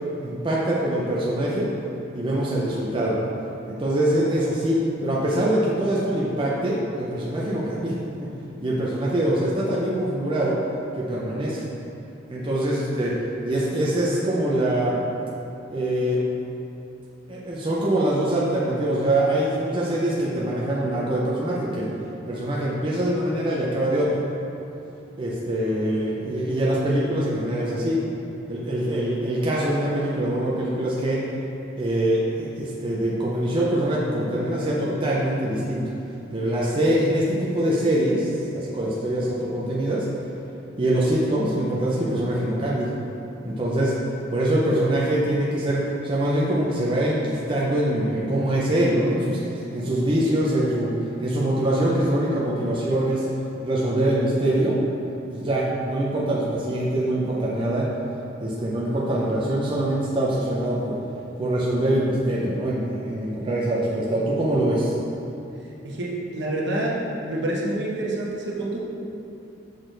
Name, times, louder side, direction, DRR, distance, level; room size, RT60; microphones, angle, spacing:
voice 1, 0.2-1.7 2.1-3.2 3.7-8.3 8.6-10.6 11.0-11.6 12.3-13.2 13.4-15.0 15.7-16.2 17.3-21.9 22.3-24.2 25.2-28.0 28.5-31.2 31.8-35.8 36.3-40.1 40.8-42.9 43.4-44.0 44.3-50.9 51.2-53.3 53.6-54.8 55.3-57.9 58.4-61.0 61.4-64.9, right 1 dB, 25° right, -6 dB, 0.6 m, -24 dB
voice 2, 65.8-68.8, right 1 dB, 65° right, -3 dB, 1.0 m, -27 dB
6.3 x 4.2 x 3.8 m, 2.8 s
head